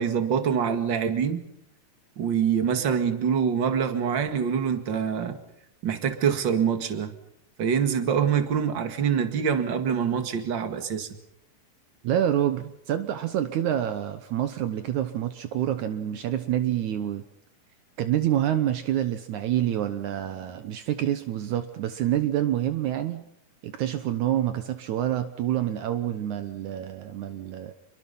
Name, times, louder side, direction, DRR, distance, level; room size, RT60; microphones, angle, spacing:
voice 1, 0.0-1.4 2.2-5.4 5.8-7.1 7.6-11.1, right 7 dB, 40° right, 8 dB, 2.4 m, -25 dB
voice 2, 12.0-17.2 18.0-23.2 23.6-27.7, right 11 dB, 70° right, 10 dB, 2.3 m, -27 dB
28.0 x 23.0 x 5.6 m, 0.77 s
omnidirectional pair, 3.6 m